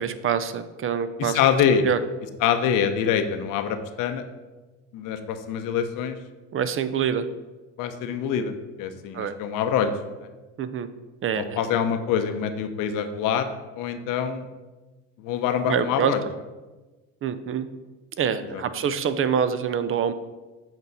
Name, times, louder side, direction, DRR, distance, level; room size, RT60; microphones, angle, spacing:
voice 1, 0.0-1.4 1.8-2.0 6.5-7.3 9.1-9.3 10.6-10.9 11.2-11.6 15.6-16.1 17.2-17.7 18.2-20.1, right 7 dB, 40° right, 12 dB, 0.6 m, -25 dB
voice 2, 1.2-1.9 2.4-4.2 4.9-6.2 7.8-9.9 10.2-10.3 11.3-13.5 13.8-14.5 15.2-16.2 18.5-18.6, left 8 dB, 75° left, 8 dB, 0.8 m, -25 dB
7.8 x 4.4 x 4.1 m, 1.2 s
supercardioid pair, 90°, 33 cm